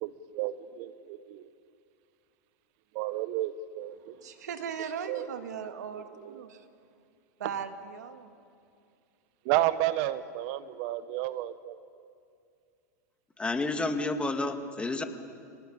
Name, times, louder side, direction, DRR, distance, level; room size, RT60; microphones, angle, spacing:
voice 1, 0.0-1.5 2.9-4.1 5.1-5.3 5.6-6.0 6.3-6.4 9.4-11.8, right 14 dB, 55° right, 14 dB, 1.0 m, -32 dB
voice 2, 4.2-6.7 7.4-8.3, right 7 dB, 80° right, 7 dB, 2.2 m, -38 dB
voice 3, 13.4-15.0, left 2 dB, 10° left, 6 dB, 2.2 m, -30 dB
28.0 x 18.5 x 8.9 m, 2.4 s
hypercardioid pair, 105°, 9 cm